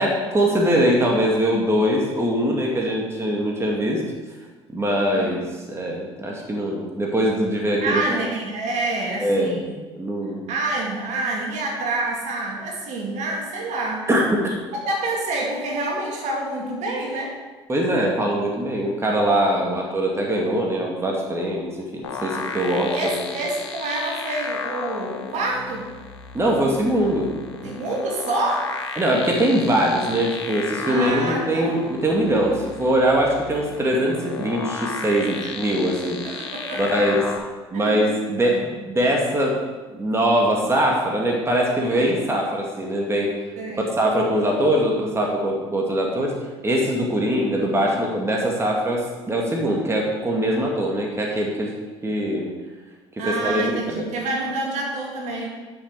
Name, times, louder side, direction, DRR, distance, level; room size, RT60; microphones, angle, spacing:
voice 1, 0.0-4.0 4.7-8.0 9.2-9.6 9.9-10.4 14.1-14.6 17.7-22.9 23.2-23.3 26.3-27.3 27.6-27.7 29.0-36.5 36.8-37.3 37.7-39.6 39.9-43.3 43.9-46.3 46.6-51.7 52.0-52.5 53.3-53.6, right 1 dB, 15° right, -1 dB, 2.0 m, -22 dB
voice 2, 5.1-5.4 7.8-9.8 10.5-14.1 14.7-17.4 19.5-19.8 22.2-22.5 22.9-25.9 27.6-28.7 30.8-31.7 35.3-35.5 36.2-37.2 37.7-38.1 38.4-38.6 41.9-42.1 43.6-43.9 53.2-55.5, right 2 dB, 50° right, -1 dB, 2.4 m, -27 dB
sound 1, 22.0-37.4, left 5 dB, 75° left, 1.0 m, -34 dB
11.0 x 6.4 x 4.7 m, 1.3 s
figure-of-eight pair, 60°, 15 cm